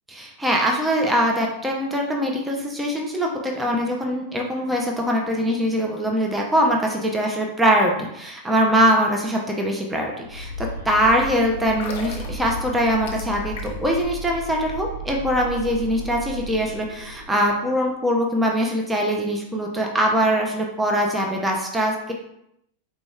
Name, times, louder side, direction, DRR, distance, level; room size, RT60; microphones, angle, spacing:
voice 1, 0.1-22.1, equal, 10° right, 0 dB, 0.7 m, -22 dB
sound 1, 10.2-17.5, right 1 dB, 85° right, 0.8 m, -34 dB
sound 2, 11.6-14.0 14.3-14.4, left 5 dB, 50° left, 0.7 m, -37 dB
4.2 x 4.0 x 2.4 m, 0.79 s
figure-of-eight pair, 90°, 0 cm